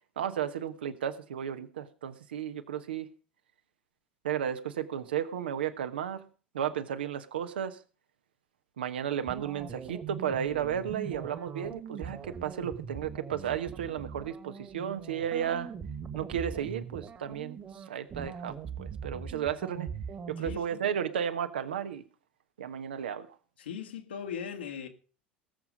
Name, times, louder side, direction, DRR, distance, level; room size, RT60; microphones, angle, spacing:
voice 1, 0.2-3.1 4.2-6.2 6.5-7.8 8.8-15.7 16.1-19.9 20.3-22.0 22.6-23.3, right 9 dB, 70° right, 1.3 m, -33 dB
sound 1, 9.3-20.6, right 6 dB, 30° right, 1.8 m, -41 dB
voice 2, 20.4-20.8 23.6-24.9, left 7 dB, 70° left, 1.9 m, -39 dB
19.0 x 7.3 x 5.1 m
figure-of-eight pair, 75°, 6 cm